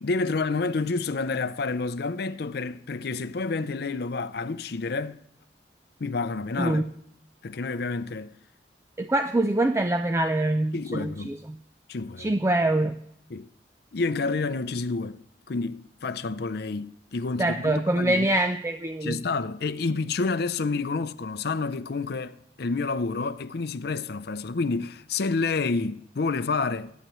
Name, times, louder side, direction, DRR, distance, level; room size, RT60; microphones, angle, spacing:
voice 1, 0.0-5.2 6.0-6.8 7.4-8.3 10.7-11.3 11.9-12.3 13.3-13.5 13.9-15.2 15.5-18.3 19.0-27.0, left 3 dB, 60° left, 0.6 m, -29 dB
voice 2, 9.0-11.6 12.2-13.0 17.4-19.2, right 1 dB, 15° right, 0.4 m, -24 dB
21.5 x 9.2 x 3.1 m
head